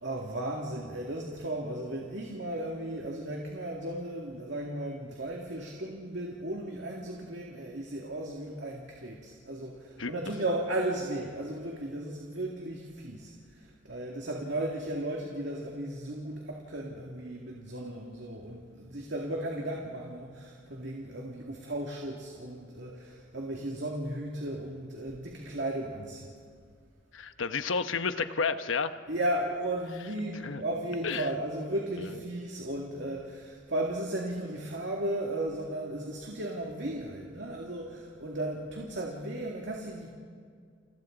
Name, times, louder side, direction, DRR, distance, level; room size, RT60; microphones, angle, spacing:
voice 1, 0.0-13.3 13.9-26.3 29.1-40.1, right 1 dB, 65° right, -1 dB, 2.3 m, -35 dB
voice 2, 27.1-28.9 30.4-30.6 31.0-31.3 32.0-32.2, left 5 dB, 90° left, 10 dB, 1.0 m, -31 dB
29.5 x 29.5 x 3.9 m, 2.1 s
head